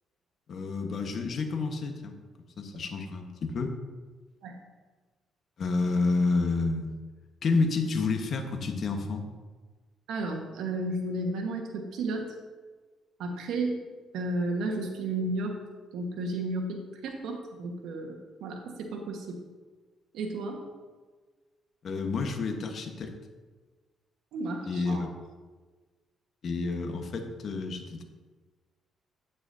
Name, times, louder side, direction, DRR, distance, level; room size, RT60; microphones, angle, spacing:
voice 1, 0.5-2.1 2.6-3.7 5.6-6.9 7.4-9.2 21.8-23.1 24.7-25.1 26.4-28.0, left 3 dB, 55° left, 4 dB, 1.2 m, -29 dB
voice 2, 10.1-12.3 13.2-13.8 14.1-15.6 15.9-19.4 20.1-20.6 24.3-25.1, right 2 dB, 80° right, 2 dB, 1.4 m, -33 dB
9.0 x 8.9 x 2.7 m, 1.3 s
cardioid pair, 85°, 0 cm